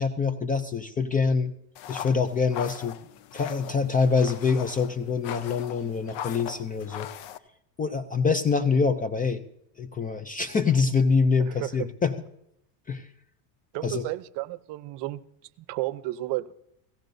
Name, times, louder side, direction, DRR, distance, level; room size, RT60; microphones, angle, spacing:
voice 1, 0.0-1.5 1.9-3.0 3.3-7.1 7.8-9.4 9.8-12.1 12.9-13.1 13.8-14.1, left 5 dB, 20° left, 11 dB, 0.4 m, -25 dB
sound 1, 1.8-7.4, left 10 dB, 70° left, 0.9 m, -40 dB
voice 2, 11.4-11.7 13.7-15.2 15.7-16.5, right 18 dB, 60° right, 15 dB, 0.8 m, -32 dB
17.5 x 16.5 x 2.6 m, 0.77 s
cardioid pair, 125°, 48 cm